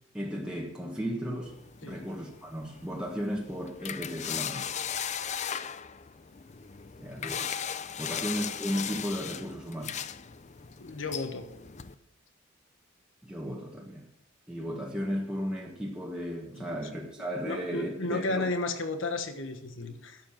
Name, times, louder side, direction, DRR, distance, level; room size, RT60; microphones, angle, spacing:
voice 1, 0.1-4.7 7.0-7.5 8.0-10.0 13.2-14.1 14.5-18.5, equal, 5° right, 1.5 m, -35 dB
sound 1, 1.4-11.9, left 8 dB, 35° left, 0.6 m, -38 dB
voice 2, 10.8-11.5 16.6-16.7 17.4-20.2, left 2 dB, 75° left, 1.3 m, -33 dB
11.5 x 7.9 x 7.4 m
head